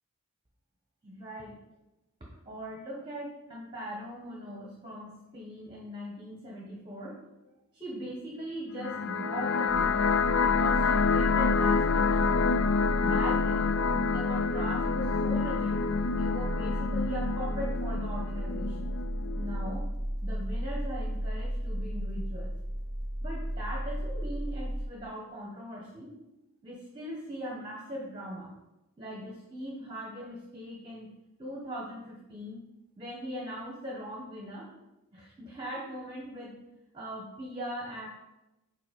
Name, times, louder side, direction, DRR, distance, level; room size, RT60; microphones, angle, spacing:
voice 1, 1.0-1.6 2.4-7.2 7.7-9.9 10.4-12.3 13.0-13.7 14.1-15.8 16.2-19.0 19.4-19.8 20.2-22.5 23.2-26.1 26.6-28.5 29.0-31.1 31.4-32.6 33.0-34.7 35.1-36.6 36.9-38.1, equal, 20° right, -3 dB, 1.1 m, -40 dB
sound 1, 8.8-19.7, left 5 dB, 60° left, 0.3 m, -28 dB
sound 2, 9.7-24.8, equal, 5° right, 0.7 m, -33 dB
5.8 x 4.5 x 5.2 m, 0.96 s
head